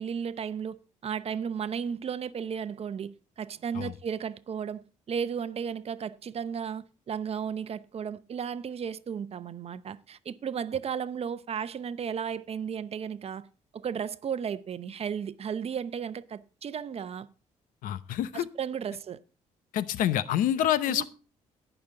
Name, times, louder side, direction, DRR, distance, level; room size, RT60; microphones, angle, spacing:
voice 1, 0.0-13.5 13.7-17.3 18.3-19.2 20.9-21.0, right 7 dB, 50° right, 0.8 m, -34 dB
voice 2, 17.8-18.5 19.7-21.0, left 11 dB, 90° left, 0.8 m, -27 dB
18.5 x 6.1 x 3.8 m
cardioid pair, 95°, 14 cm